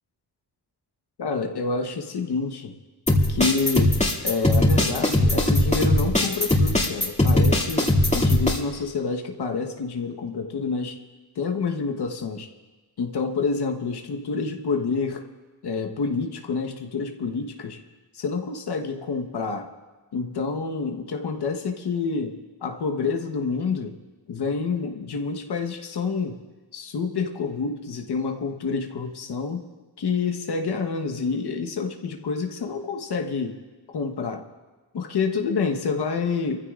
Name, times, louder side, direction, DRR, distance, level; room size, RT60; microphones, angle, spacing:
voice 1, 1.2-2.8 3.3-11.0 11.3-12.5 13.0-15.2 15.6-17.8 18.1-19.7 20.1-22.4 22.6-23.9 24.3-26.4 26.7-29.7 30.0-33.6 33.9-34.5 34.9-36.6, left 4 dB, 70° left, 4 dB, 1.3 m, -28 dB
sound 1, 3.1-8.6, left 1 dB, 15° left, 2.5 m, -20 dB
23.5 x 15.0 x 2.5 m, 1.2 s
cardioid pair, 60°, 41 cm